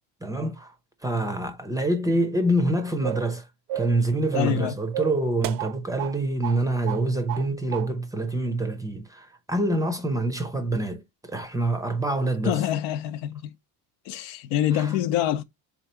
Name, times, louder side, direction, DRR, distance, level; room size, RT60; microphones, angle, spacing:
voice 1, 0.2-0.7 1.0-3.5 3.7-12.6 14.7-15.0, right 1 dB, 10° right, 0.5 m, -26 dB
sound 1, 3.0-3.3 3.7-4.0 4.3-4.6 4.9-6.2 6.4-6.6 6.9-7.5 7.7-7.9, right 13 dB, 75° right, 0.6 m, -32 dB
voice 2, 4.3-4.7 12.5-13.5 14.1-15.4, left 11 dB, 85° left, 0.7 m, -25 dB
3.7 x 2.9 x 4.3 m
cardioid pair, 130°, 43 cm